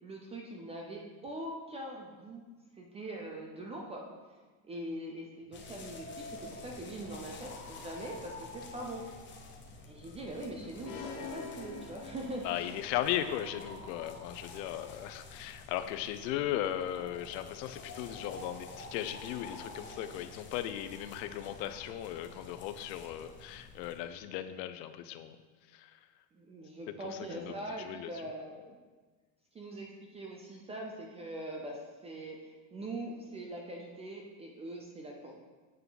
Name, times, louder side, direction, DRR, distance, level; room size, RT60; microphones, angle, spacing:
voice 1, 0.0-2.5 2.7-4.0 4.6-9.1 9.9-12.7 26.3-28.8 29.5-35.3, right 1 dB, 15° right, 0 dB, 0.3 m, -42 dB
sound 1, 5.5-24.0, left 3 dB, 25° left, 0.7 m, -49 dB
sound 2, 10.8-12.8, left 5 dB, 40° left, 1.0 m, -45 dB
voice 2, 12.4-25.4 25.7-26.0 26.9-28.1, left 12 dB, 80° left, 10 dB, 0.7 m, -37 dB
7.7 x 5.8 x 3.9 m, 1.3 s
supercardioid pair, 145°, 49 cm